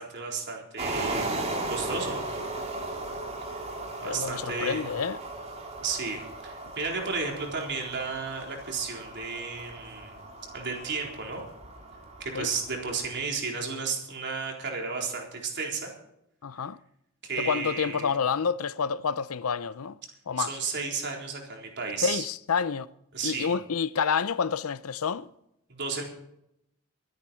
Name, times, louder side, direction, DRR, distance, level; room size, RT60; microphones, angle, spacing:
voice 1, 0.0-1.4 1.7-2.4 4.0-4.8 5.8-10.1 10.5-11.4 12.2-15.9 17.2-18.1 20.4-22.3 23.1-23.5 25.7-26.0, right 4 dB, 55° right, 4.0 m, -33 dB
sound 1, 0.8-13.2, right 2 dB, 30° right, 3.0 m, -37 dB
voice 2, 4.0-5.2 12.3-12.5 16.4-16.8 17.4-20.0 20.3-20.6 22.0-22.9 23.2-25.3, left 6 dB, 80° left, 0.6 m, -28 dB
23.5 x 9.9 x 4.5 m
head